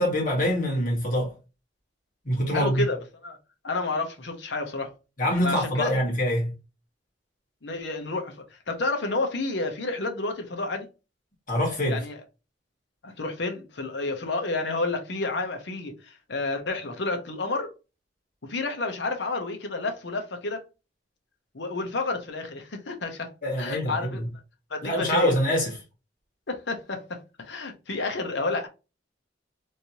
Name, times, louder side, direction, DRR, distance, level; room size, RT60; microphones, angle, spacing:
voice 1, 0.0-1.3 2.2-2.8 5.2-6.5 11.5-12.0 23.4-24.2 24.8-25.7, equal, 45° left, 1.5 m, -25 dB
voice 2, 2.5-3.4 3.6-4.9 5.4-5.9 7.6-10.9 11.9-12.2 13.0-17.7 18.4-20.6 21.5-24.2 24.7-25.4 26.5-28.7, left 3 dB, 70° left, 0.8 m, -30 dB
3.2 x 2.7 x 2.9 m
head